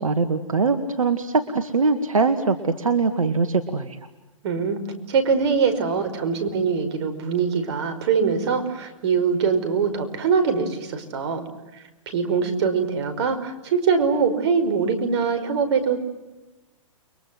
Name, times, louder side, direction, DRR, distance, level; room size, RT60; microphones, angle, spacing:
voice 1, 0.0-4.0, right 4 dB, 90° right, 9 dB, 2.1 m, -22 dB
voice 2, 4.4-4.8 5.1-11.4 11.7-16.0, right 5 dB, 55° right, 9 dB, 5.3 m, -23 dB
30.0 x 23.5 x 7.8 m, 1.0 s
hypercardioid pair, 125°, 17 cm